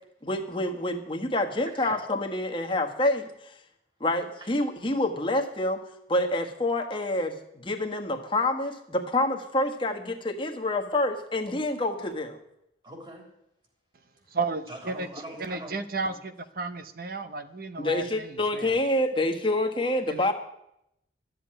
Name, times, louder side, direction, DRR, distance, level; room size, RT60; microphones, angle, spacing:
voice 1, 0.2-3.5 4.0-5.8 6.1-7.3 7.6-12.4 17.8-20.3, left 1 dB, 25° left, 3 dB, 1.5 m, -27 dB
voice 2, 12.8-13.2 14.7-15.8 16.1-16.2, right 1 dB, 25° right, 2 dB, 3.4 m, -42 dB
voice 3, 14.3-15.1 15.4-18.8 20.1-20.3, right 3 dB, 50° right, 11 dB, 0.9 m, -33 dB
13.0 x 7.7 x 10.0 m, 0.80 s
head